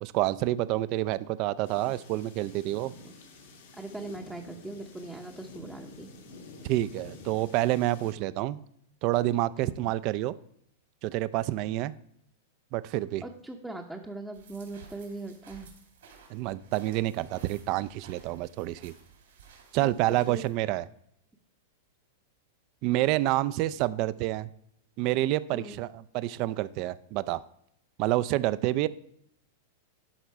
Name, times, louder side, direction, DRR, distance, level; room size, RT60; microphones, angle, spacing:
voice 1, 0.0-2.9 6.6-8.6 9.0-10.3 11.0-11.9 12.7-13.2 16.3-18.9 19.7-20.8 22.8-24.5 25.0-27.4 28.0-28.9, right 16 dB, 50° right, 16 dB, 0.3 m, -28 dB
sound 1, 1.6-8.1, left 3 dB, 75° left, 1.8 m, -49 dB
voice 2, 3.7-6.1 13.2-15.7 20.3-20.4 25.5-25.8, right 2 dB, 5° right, 0 dB, 0.7 m, -40 dB
sound 2, 14.3-20.5, right 6 dB, 80° right, 2.5 m, -55 dB
11.5 x 3.9 x 4.6 m, 0.72 s
hypercardioid pair, 115°, 0 cm